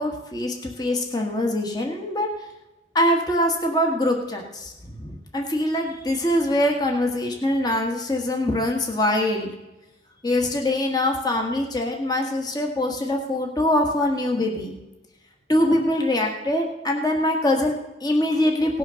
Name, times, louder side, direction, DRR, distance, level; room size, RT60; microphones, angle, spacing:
voice 1, 0.0-2.3 2.9-9.5 10.2-14.7 15.5-18.8, left 1 dB, 25° left, 2 dB, 1.5 m, -23 dB
18.0 x 6.3 x 6.4 m, 0.99 s
head